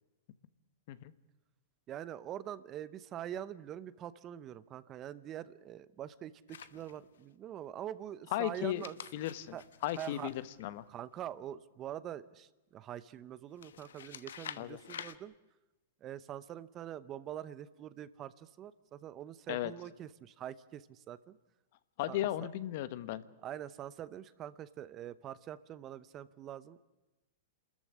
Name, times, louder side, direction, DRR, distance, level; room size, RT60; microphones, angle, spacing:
voice 1, 1.9-8.9 9.5-9.6 10.0-10.3 10.9-15.3 16.0-21.4 22.1-22.5 23.4-26.8, right 11 dB, 25° right, 17 dB, 0.8 m, -44 dB
sound 1, 6.5-7.2 8.6-11.2 13.6-15.2, left 8 dB, 85° left, 1.1 m, -49 dB
voice 2, 8.3-8.9 9.1-9.6 9.8-10.8 14.6-14.8 19.5-19.7 22.0-23.2, left 13 dB, 50° left, 15 dB, 1.2 m, -35 dB
27.0 x 14.0 x 9.8 m, 1.1 s
hypercardioid pair, 150°, 0 cm